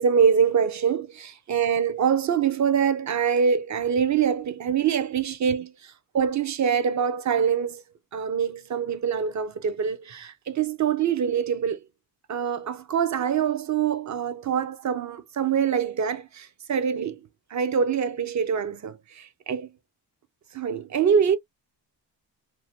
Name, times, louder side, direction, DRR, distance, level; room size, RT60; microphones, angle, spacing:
voice 1, 0.0-7.8 8.1-11.8 12.3-17.2 17.5-19.7 20.5-21.4, right 7 dB, 40° right, 0.6 m, -24 dB
2.8 x 2.1 x 2.7 m
cardioid pair, 75°, 43 cm